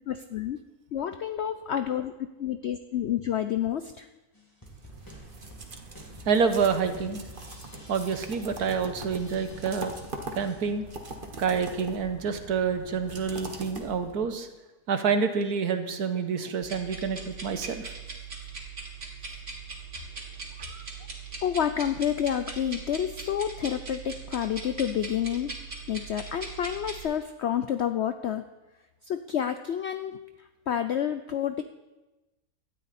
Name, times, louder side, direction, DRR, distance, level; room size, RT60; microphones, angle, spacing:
voice 1, 0.1-0.6 0.9-4.1 21.4-25.5 25.9-28.4 29.0-31.6, left 9 dB, 60° left, 9 dB, 0.7 m, -29 dB
sound 1, 4.3-10.7, equal, 15° left, 2.5 m, -50 dB
sound 2, 4.7-14.4, right 2 dB, 35° right, 1.5 m, -42 dB
voice 2, 6.2-7.3 7.9-9.9 10.4-10.8 11.4-14.5 14.9-17.9 20.6-20.8, right 6 dB, 85° right, 8 dB, 1.7 m, -28 dB
sound 3, 16.6-27.0, right 4 dB, 50° right, 2.8 m, -40 dB
17.5 x 12.5 x 4.3 m, 1.1 s
omnidirectional pair, 1.6 m